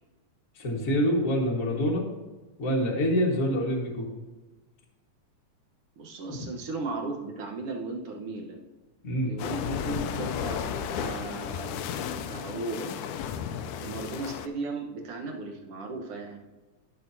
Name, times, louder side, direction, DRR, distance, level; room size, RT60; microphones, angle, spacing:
voice 1, 0.6-2.0 2.6-4.1 6.3-6.4 9.0-9.3, equal, 40° left, -3 dB, 1.2 m, -26 dB
voice 2, 6.0-8.6 9.2-11.8 12.2-12.9 13.8-16.4, right 3 dB, 60° right, 1 dB, 1.7 m, -36 dB
sound 1, 9.4-14.5, left 8 dB, 80° left, 2.0 m, -33 dB
17.0 x 6.0 x 2.7 m, 1.2 s
omnidirectional pair, 3.5 m